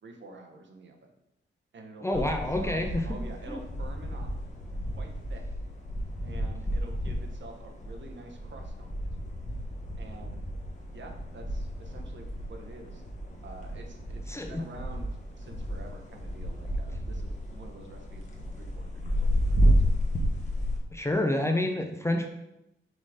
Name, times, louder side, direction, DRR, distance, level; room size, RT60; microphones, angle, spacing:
voice 1, 0.0-1.1 1.7-4.3 5.0-5.4 6.2-9.1 10.0-10.5 10.9-13.0 13.4-19.9, right 2 dB, 65° right, 3 dB, 1.0 m, -48 dB
voice 2, 2.0-3.0 3.5-3.6 14.3-14.6 20.9-22.3, left 1 dB, 15° left, 4 dB, 0.5 m, -28 dB
sound 1, 2.1-20.8, equal, 35° left, 1.1 m, -31 dB
6.3 x 3.8 x 4.9 m, 0.88 s
wide cardioid pair, 165°, 21 cm